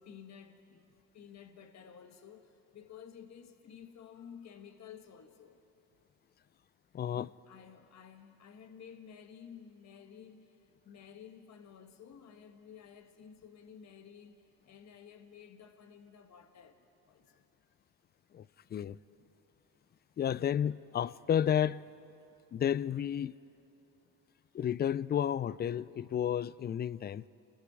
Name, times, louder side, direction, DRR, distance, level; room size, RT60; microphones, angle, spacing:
voice 1, 0.0-5.6 7.1-16.8 17.1-17.4, left 7 dB, 45° left, 1.4 m, -53 dB
voice 2, 6.9-7.3 18.3-18.5 18.7-19.0 20.2-21.8 22.5-23.4 24.5-27.2, left 9 dB, 30° left, 0.4 m, -31 dB
28.5 x 20.0 x 4.8 m
supercardioid pair, 80°, 37 cm